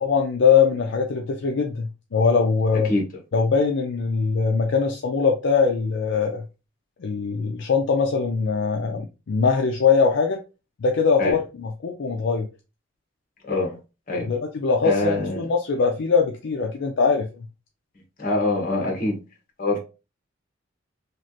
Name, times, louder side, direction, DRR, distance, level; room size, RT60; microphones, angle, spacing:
voice 1, 0.0-2.9 3.3-6.4 7.0-10.4 10.8-12.5 14.2-17.5, left 5 dB, 65° left, 0.4 m, -22 dB
voice 2, 14.8-15.4 18.2-19.2 19.6-19.8, left 2 dB, 45° left, 1.1 m, -24 dB
3.2 x 2.4 x 2.6 m
head